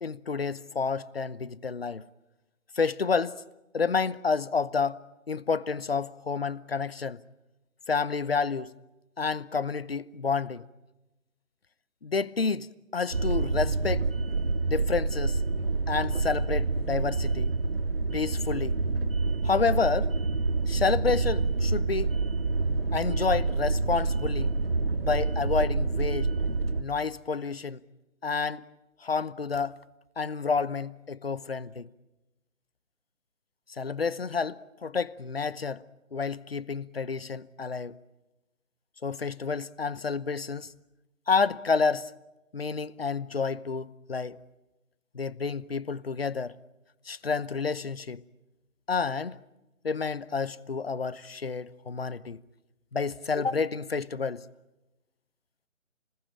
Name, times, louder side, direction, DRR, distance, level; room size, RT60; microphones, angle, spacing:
voice 1, 0.0-2.0 2.7-3.4 3.7-5.0 5.3-7.2 7.9-8.7 9.2-10.6 12.0-14.1 14.7-15.4 15.9-17.5 18.1-18.8 19.4-20.1 20.7-22.2 22.9-24.5 24.9-26.3 26.8-27.8 28.2-28.6 29.0-29.8 30.2-31.9 33.7-35.9 36.1-38.0 39.0-40.7 41.3-42.1 42.5-44.4 45.1-46.6 47.1-48.2 48.9-49.4 49.8-52.4 52.9-54.5, left 5 dB, 45° left, 0.9 m, -29 dB
sound 1, 13.1-26.8, right 3 dB, 45° right, 1.2 m, -27 dB
29.5 x 20.5 x 8.9 m
hypercardioid pair, 180°, 40 cm